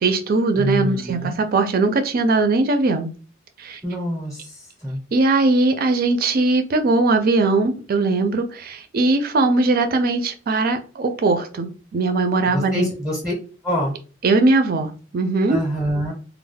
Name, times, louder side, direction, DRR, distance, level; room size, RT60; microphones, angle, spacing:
voice 1, 0.0-3.1 3.6-3.8 5.1-12.9 14.2-15.6, right 3 dB, 50° right, 8 dB, 0.4 m, -20 dB
voice 2, 0.5-1.4 3.8-5.0 12.4-13.3 13.6-14.0 15.5-16.1, equal, 5° right, -2 dB, 0.6 m, -25 dB
2.2 x 2.0 x 3.2 m, 0.37 s
head